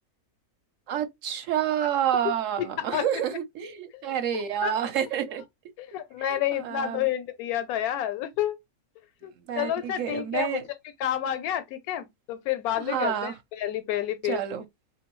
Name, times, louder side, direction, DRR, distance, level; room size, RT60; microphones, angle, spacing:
voice 1, 0.9-5.4 6.2-7.0 9.5-10.6 12.8-13.4 14.2-14.7, right 9 dB, 65° right, 1.0 m, -29 dB
voice 2, 5.9-8.6 9.2-10.6 11.0-14.4, left 11 dB, 90° left, 1.1 m, -29 dB
3.6 x 2.6 x 3.0 m
omnidirectional pair, 1.5 m